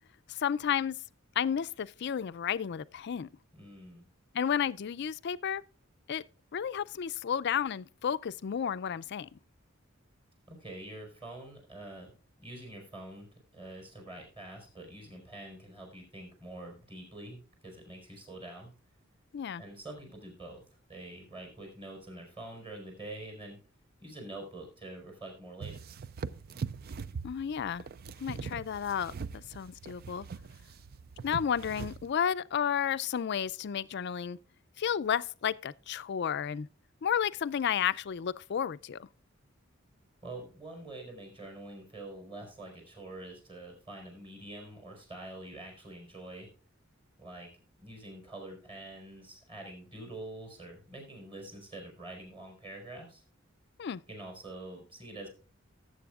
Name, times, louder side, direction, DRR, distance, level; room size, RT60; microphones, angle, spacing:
voice 1, 0.3-1.0 1.4-3.3 4.3-5.6 6.1-6.2 6.5-9.3 19.3-19.6 27.2-27.8 28.2-30.3 31.2-34.4 34.8-36.7 37.0-39.1 53.8-54.0, left 8 dB, 55° left, 0.4 m, -32 dB
voice 2, 3.5-4.1 10.5-12.1 12.4-13.3 13.5-18.7 19.6-20.6 20.9-23.6 24.0-25.8 40.2-46.5 47.2-47.5 47.8-53.2 54.1-55.3, right 2 dB, 25° right, 4.2 m, -46 dB
sound 1, 25.6-32.1, right 5 dB, 50° right, 0.4 m, -41 dB
18.5 x 7.8 x 2.4 m
head